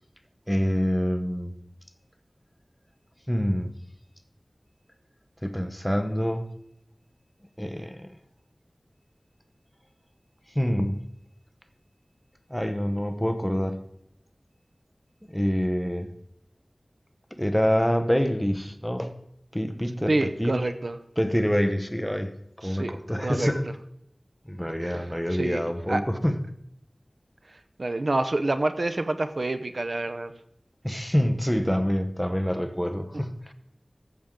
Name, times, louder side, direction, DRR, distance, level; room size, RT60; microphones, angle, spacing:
voice 1, 0.5-1.5 3.3-3.7 5.4-6.4 7.6-8.1 10.5-11.0 12.5-13.8 15.3-16.1 17.3-19.1 19.5-20.7 21.2-22.3 22.6-23.7 24.5-26.4 30.8-33.5, equal, 5° left, 8 dB, 0.9 m, -26 dB
voice 2, 20.1-21.0 22.6-22.9 23.2-23.5 24.8-25.1 25.3-26.0 27.8-30.3, right 2 dB, 70° right, 10 dB, 0.6 m, -27 dB
14.0 x 7.3 x 3.7 m, 0.76 s
wide cardioid pair, 55°, 0 cm